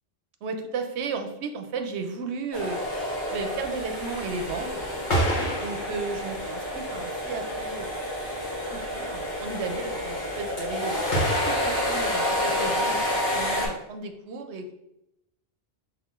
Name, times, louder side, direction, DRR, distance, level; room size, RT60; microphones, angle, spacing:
voice 1, 0.4-2.8 3.3-4.9 5.6-8.1 8.7-11.1 11.5-14.7, right 4 dB, 85° right, 6 dB, 0.9 m, -34 dB
sound 1, 2.5-13.7, left 1 dB, 65° left, 1.6 m, -29 dB
sound 2, 3.9-6.7 7.3-7.4 7.7-7.8 8.0-8.1 8.3-8.8 11.1-13.1, right 1 dB, 50° left, 1.1 m, -30 dB
5.6 x 3.3 x 2.4 m, 0.84 s
omnidirectional pair, 1.1 m